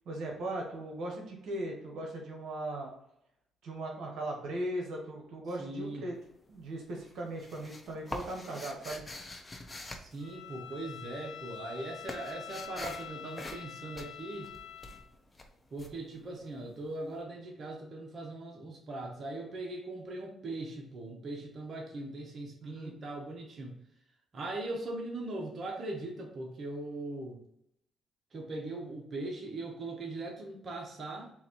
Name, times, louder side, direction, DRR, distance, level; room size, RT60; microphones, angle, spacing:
voice 1, 0.1-2.9 3.6-6.1 6.5-9.0 22.6-22.9, right 1 dB, 75° right, 0 dB, 1.0 m, -38 dB
voice 2, 5.6-6.1 10.0-14.5 15.7-23.8 24.3-27.4 28.3-31.3, right 2 dB, 45° right, 1 dB, 1.0 m, -40 dB
sound 1, 6.1-6.7 7.0-11.0 11.3-16.9, left 2 dB, 25° left, 0.7 m, -45 dB
Bowed string instrument, 10.2-15.1, left 10 dB, 65° left, 0.8 m, -46 dB
4.0 x 2.6 x 4.4 m, 0.77 s
cardioid pair, 90°, 0 cm